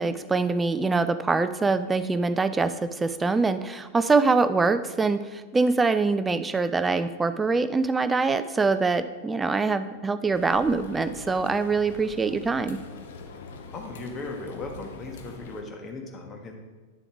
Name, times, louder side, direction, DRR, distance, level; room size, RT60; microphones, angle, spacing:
voice 1, 0.0-12.8, right 4 dB, 15° right, 11 dB, 0.4 m, -24 dB
sound 1, 10.3-15.6, left 4 dB, 60° left, 0.8 m, -43 dB
voice 2, 13.7-16.5, left 3 dB, 25° left, 3 dB, 1.3 m, -37 dB
9.3 x 7.0 x 3.4 m, 1.3 s
figure-of-eight pair, 90°, 0 cm